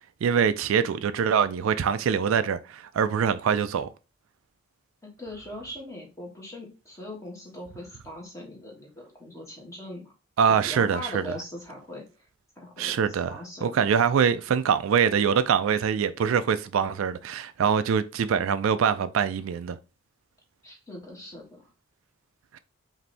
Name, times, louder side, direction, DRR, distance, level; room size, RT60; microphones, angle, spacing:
voice 1, 0.2-3.9 10.4-11.4 12.8-19.8 22.5-22.6, right 7 dB, 70° right, 0.3 m, -24 dB
voice 2, 5.0-10.1 10.4-12.0 12.6-13.9 20.6-21.6, left 1 dB, 15° left, 1.5 m, -41 dB
5.0 x 2.7 x 3.3 m
head